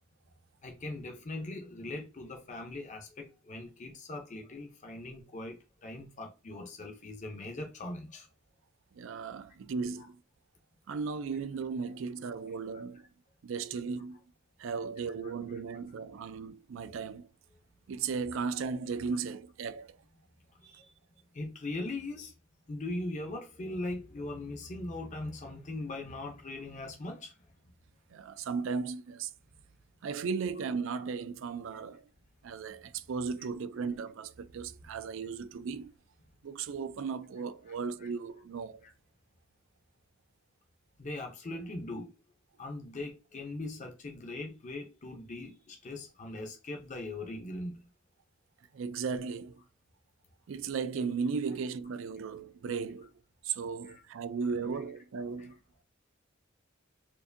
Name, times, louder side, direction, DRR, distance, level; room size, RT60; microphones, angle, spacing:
voice 1, 0.6-8.3 15.2-15.3 16.8-16.9 20.5-20.9 21.3-22.3 22.7-27.4 37.7-38.1 38.8-38.9 41.0-42.1 42.6-47.8 53.8-54.0 54.6-54.8 55.4-55.5, left 2 dB, 35° left, 0.6 m, -40 dB
voice 2, 8.9-10.2 10.9-13.1 13.4-14.2 14.6-17.3 17.9-20.0 20.7-20.8 28.1-29.3 30.0-32.0 32.4-35.9 36.4-38.8 48.7-49.6 50.5-53.1 53.4-55.6, right 5 dB, 70° right, 0.4 m, -36 dB
4.4 x 2.6 x 2.6 m
head